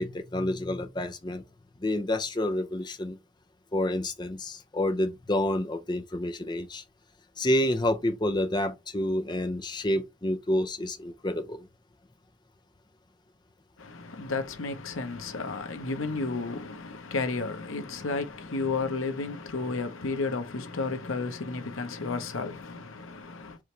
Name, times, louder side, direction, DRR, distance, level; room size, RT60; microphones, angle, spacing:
voice 1, 0.0-1.4 1.8-3.2 3.7-6.8 7.4-11.7, left 1 dB, 20° left, 0.5 m, -29 dB
voice 2, 13.8-23.6, left 3 dB, 85° left, 0.9 m, -32 dB
4.9 x 3.1 x 3.2 m
head